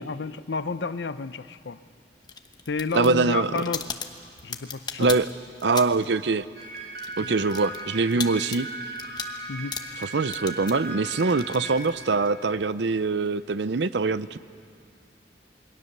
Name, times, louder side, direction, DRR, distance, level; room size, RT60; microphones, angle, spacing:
voice 1, 0.0-1.8 2.7-3.9 4.4-5.2 7.2-7.4 9.5-9.8, left 4 dB, 80° left, 13 dB, 0.7 m, -31 dB
sound 1, 2.2-6.2 6.4-12.3, left 6 dB, 25° left, 1.0 m, -37 dB
voice 2, 2.9-3.6 5.0-5.3 5.6-6.4 7.2-8.7 10.1-14.4, right 4 dB, 80° right, 15 dB, 0.6 m, -23 dB
sound 2, 6.6-11.8, right 2 dB, 60° right, 4.1 m, -37 dB
28.0 x 22.0 x 6.7 m, 2.3 s
head